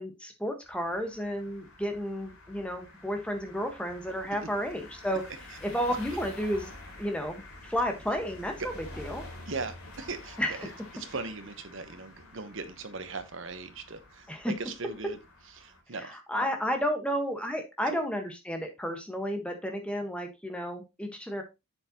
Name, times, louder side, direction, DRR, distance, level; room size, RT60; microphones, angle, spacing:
voice 1, 0.0-5.2 5.6-6.7 7.0-8.5 9.0-9.2 10.4-10.7 14.3-14.5 16.0-21.4, equal, 5° left, 4 dB, 1.4 m, -32 dB
sound 1, 0.6-15.8, left 2 dB, 80° left, 3.4 m, -48 dB
voice 2, 9.5-15.2 15.6-16.2 17.9-18.0, right 4 dB, 60° right, 10 dB, 1.0 m, -39 dB
7.7 x 6.7 x 2.9 m, 0.23 s
head